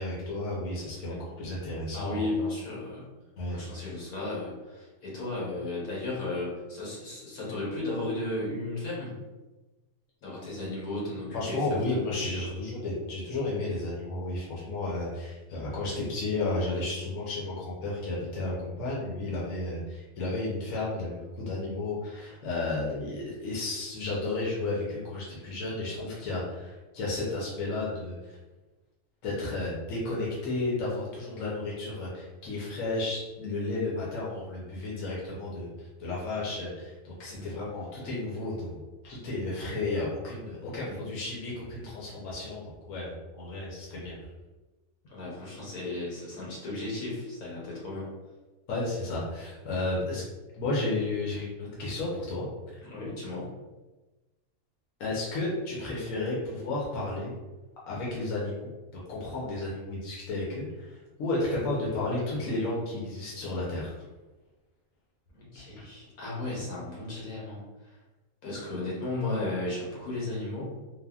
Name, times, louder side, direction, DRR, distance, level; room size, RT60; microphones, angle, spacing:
voice 1, 0.0-2.3 3.4-3.6 11.3-28.4 29.2-44.2 48.7-50.2 50.6-52.5 55.0-57.3 57.9-58.7 59.1-63.9, left 2 dB, 70° left, -5 dB, 1.1 m, -33 dB
voice 2, 1.9-3.0 3.5-9.2 10.2-11.7 12.0-12.4 37.3-37.5 40.8-41.1 45.0-48.1 52.8-53.5 65.3-67.9 68.4-70.7, left 2 dB, 85° left, -6 dB, 1.4 m, -35 dB
3.3 x 2.2 x 2.3 m, 1.1 s
omnidirectional pair, 1.5 m